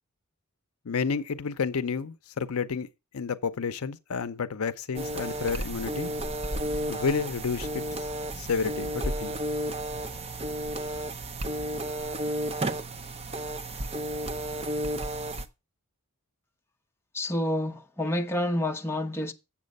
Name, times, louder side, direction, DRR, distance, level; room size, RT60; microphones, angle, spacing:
voice 1, 0.9-2.9 3.1-6.1 6.9-7.8 8.4-9.4, left 5 dB, 70° left, 0.6 m, -30 dB
sound 1, 4.9-15.5, right 1 dB, 30° right, 0.7 m, -32 dB
voice 2, 17.1-19.3, left 1 dB, 10° left, 0.7 m, -28 dB
7.3 x 7.3 x 5.3 m
head